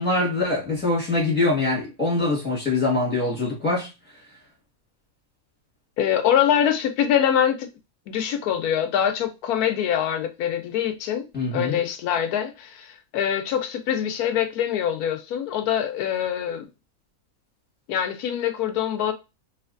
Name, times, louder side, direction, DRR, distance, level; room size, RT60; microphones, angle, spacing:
voice 1, 0.0-3.9 11.3-11.8, left 2 dB, 5° left, 1.6 m, -23 dB
voice 2, 6.0-7.7 8.1-11.3 11.5-16.7 17.9-19.1, left 9 dB, 85° left, 1.1 m, -24 dB
3.2 x 3.1 x 2.5 m
omnidirectional pair, 1.6 m